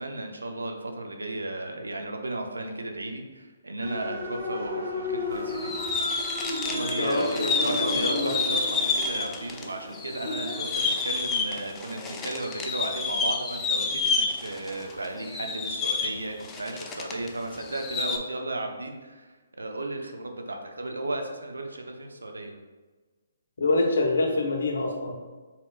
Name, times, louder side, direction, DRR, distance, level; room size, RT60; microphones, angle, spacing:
voice 1, 0.0-5.7 6.6-22.6, right 2 dB, 80° right, 3 dB, 0.5 m, -35 dB
sound 1, 3.8-10.6, left 1 dB, 60° right, 1.3 m, -34 dB
sound 2, 5.5-9.6 9.9-17.3 17.5-18.2, left 4 dB, 15° left, 0.4 m, -29 dB
voice 2, 7.0-8.3 23.6-25.2, left 2 dB, 70° left, 1 dB, 0.9 m, -26 dB
4.9 x 3.5 x 2.4 m, 1.3 s
figure-of-eight pair, 135°, 0 cm